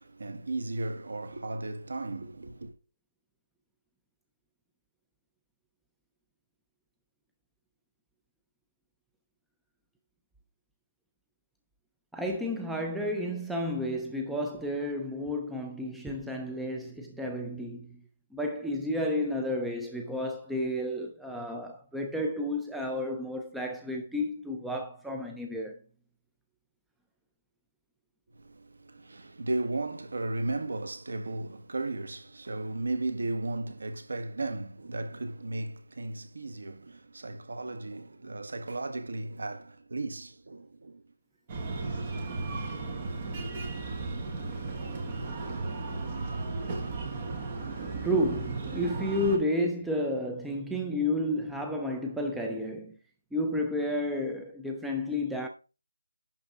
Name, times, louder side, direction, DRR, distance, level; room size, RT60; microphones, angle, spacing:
voice 1, 0.0-2.7 28.3-41.1 41.7-42.1, right 2 dB, 55° right, 1.5 m, -35 dB
voice 2, 12.1-18.0 18.3-25.8 48.0-53.0 53.3-55.5, left 1 dB, ahead, 0.4 m, -31 dB
Breathing, 41.5-49.4, right 3 dB, 20° right, 1.1 m, -35 dB
11.0 x 3.7 x 5.9 m
figure-of-eight pair, 180°, 0 cm